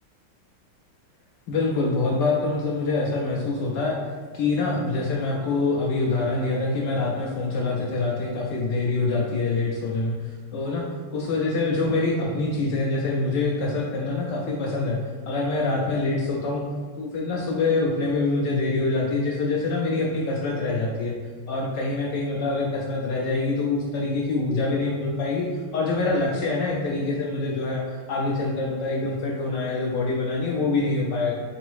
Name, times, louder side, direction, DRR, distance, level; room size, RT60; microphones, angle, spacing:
voice 1, 1.5-4.0 4.3-10.1 10.5-10.9 11.1-15.0 15.3-16.6 17.0-21.1 21.5-25.5 25.7-31.3, left 3 dB, 75° left, -2 dB, 1.0 m, -25 dB
4.0 x 3.4 x 3.1 m, 1.5 s
omnidirectional pair, 2.2 m